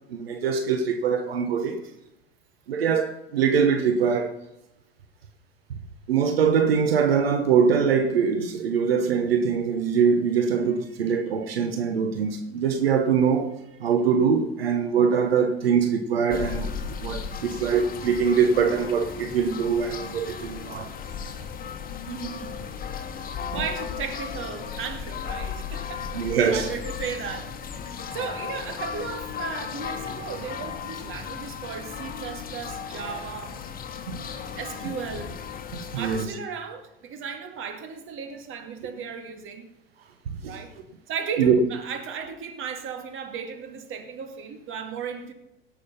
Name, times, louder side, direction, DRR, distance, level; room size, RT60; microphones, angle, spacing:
voice 1, 0.1-1.8 2.7-4.4 6.1-13.5 13.8-16.7 17.0-20.9 23.5-23.6 26.1-26.7 34.1-34.2 35.9-36.3 40.4-40.6 41.4-41.6, right 6 dB, 85° right, 1.2 m, -23 dB
sound 1, 16.3-36.2, left 7 dB, 30° left, 1.6 m, -35 dB
voice 2, 22.1-22.7 23.5-33.6 34.6-35.4 35.9-39.7 40.5-40.7 41.1-45.3, right 6 dB, 45° right, 2.4 m, -35 dB
17.5 x 6.5 x 5.6 m
hypercardioid pair, 90°, 29 cm